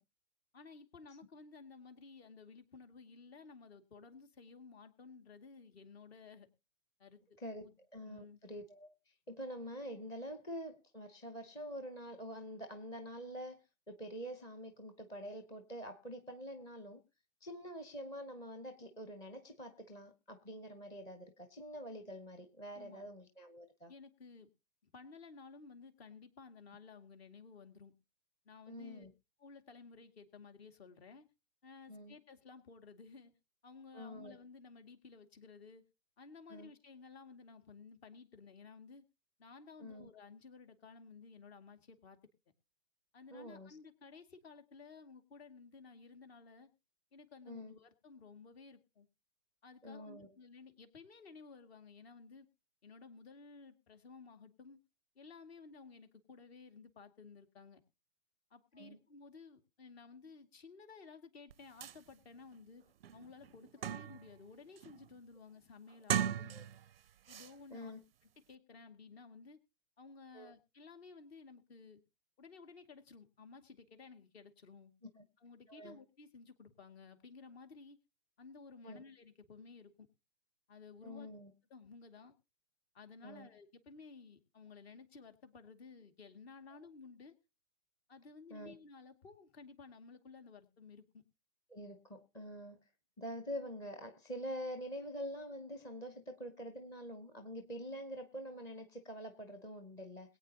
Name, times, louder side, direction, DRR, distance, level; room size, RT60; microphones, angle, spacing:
voice 1, 0.5-6.5 7.0-7.2 7.6-7.8 8.1-8.4 22.7-23.1 23.9-24.5 24.8-27.9 28.4-29.1 29.4-31.3 31.6-33.3 33.6-35.8 36.2-39.0 39.4-42.2 43.1-46.7 47.1-49.1 49.6-52.5 52.8-54.8 55.2-57.8 58.5-62.8 63.1-66.6 67.3-67.9 68.5-69.6 70.0-72.0 72.4-74.9 75.4-78.0 78.4-80.1 80.7-81.3 81.7-82.3 82.9-87.3 88.1-91.2, left 4 dB, 45° left, 8 dB, 2.3 m, -55 dB
voice 2, 7.9-17.0 17.4-23.9 28.7-29.1 31.9-32.1 33.9-34.4 36.5-36.7 39.8-40.1 43.3-43.7 47.5-47.7 49.8-50.3 58.8-59.0 66.5-66.6 67.7-68.0 70.3-70.5 75.2-75.3 75.7-76.0 78.8-79.0 81.0-81.5 83.2-83.5 88.5-88.7 91.7-92.8 93.2-100.4, equal, 10° left, 6 dB, 0.7 m, -46 dB
sound 1, 61.5-61.6 61.8-62.0 62.5-62.6 63.0-64.4 64.8-65.1 65.9-66.9 67.3-67.5, right 9 dB, 45° right, 0.5 m, -38 dB
21.5 x 8.7 x 2.8 m, 0.29 s
figure-of-eight pair, 130°, 41 cm